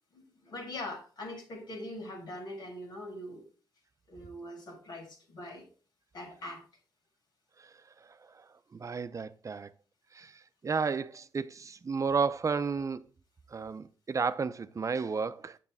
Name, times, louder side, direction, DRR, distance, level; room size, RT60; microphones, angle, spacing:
voice 1, 0.1-3.4 4.1-5.6 6.1-6.6, left 1 dB, 70° left, 3.4 m, -42 dB
voice 2, 7.6-9.7 10.1-13.0 13.5-15.6, right 5 dB, 40° right, 0.6 m, -33 dB
7.4 x 6.9 x 3.5 m
cardioid pair, 60°, 8 cm